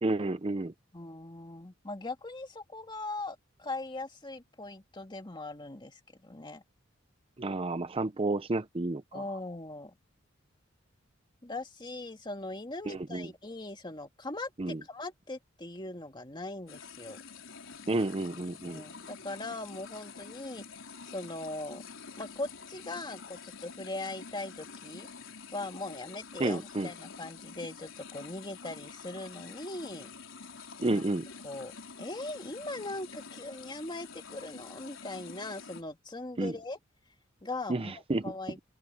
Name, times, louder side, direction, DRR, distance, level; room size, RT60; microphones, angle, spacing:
voice 1, 0.0-0.7 7.4-9.2 12.9-13.3 14.6-14.8 17.9-18.8 26.4-26.9 30.8-31.2 36.4-36.5 37.7-38.2, right 2 dB, 30° right, 0.6 m, -31 dB
voice 2, 0.9-6.6 9.1-9.9 11.4-17.2 18.6-20.7 21.1-21.8 22.2-25.1 25.5-30.1 30.8-31.0 31.4-36.8 37.4-38.6, left 2 dB, 25° left, 2.2 m, -40 dB
sound 1, 16.7-35.8, left 5 dB, 85° left, 4.1 m, -47 dB
open air
head